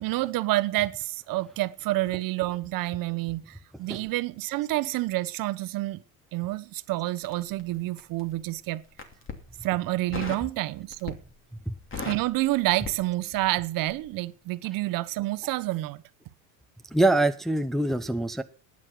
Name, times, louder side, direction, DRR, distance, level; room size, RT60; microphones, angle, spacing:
voice 1, 0.0-6.0 6.3-8.8 9.6-11.2 12.0-16.0, right 18 dB, 50° right, 0.9 m, -28 dB
Crackle, 7.2-8.3 8.9-9.4 10.1-10.5 10.9-11.4 11.7-13.6 13.9-14.1, left 5 dB, 30° left, 2.9 m, -38 dB
voice 2, 16.9-18.4, right 2 dB, ahead, 0.7 m, -24 dB
12.5 x 9.8 x 6.0 m
supercardioid pair, 115°, 42 cm